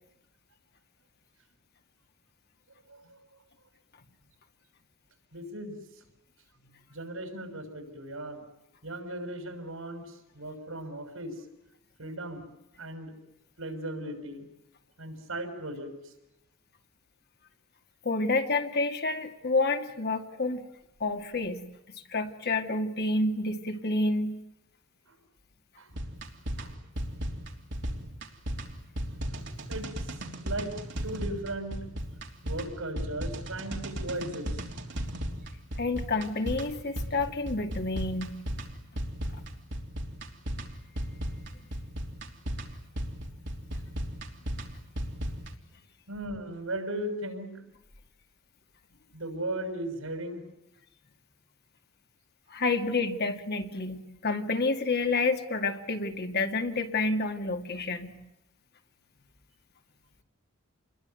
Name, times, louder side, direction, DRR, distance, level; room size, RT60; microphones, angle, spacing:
voice 1, 5.3-5.8 6.9-8.4 8.8-11.3 12.0-12.5 12.8-13.1 13.6-14.5 15.0-16.1 25.1-25.2 25.8-25.9 26.6-26.7 29.7-30.1 30.4-30.7 31.0-31.8 32.4-34.7 46.1-47.5 49.1-50.4, right 1 dB, 80° right, 7 dB, 6.5 m, -37 dB
voice 2, 18.0-20.7 21.0-21.7 22.1-24.4 35.8-38.4 52.5-58.2, left 3 dB, 50° left, 5 dB, 2.3 m, -29 dB
sound 1, 25.9-45.5, equal, 60° right, 3.4 m, -36 dB
28.5 x 22.0 x 9.2 m, 0.90 s
head